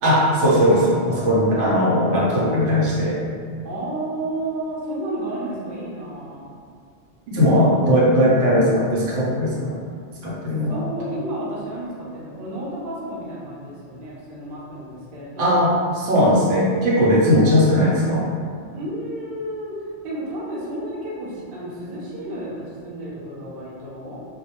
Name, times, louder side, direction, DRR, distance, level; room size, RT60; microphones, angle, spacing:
voice 1, 0.0-3.2 7.3-9.8 10.2-10.8 15.4-15.7 16.0-18.3, equal, 85° right, -6 dB, 0.9 m, -18 dB
voice 2, 3.6-6.5 10.7-15.7 18.7-24.3, right 1 dB, 60° right, -6 dB, 0.8 m, -32 dB
2.2 x 2.1 x 2.8 m, 2.2 s
omnidirectional pair, 1.2 m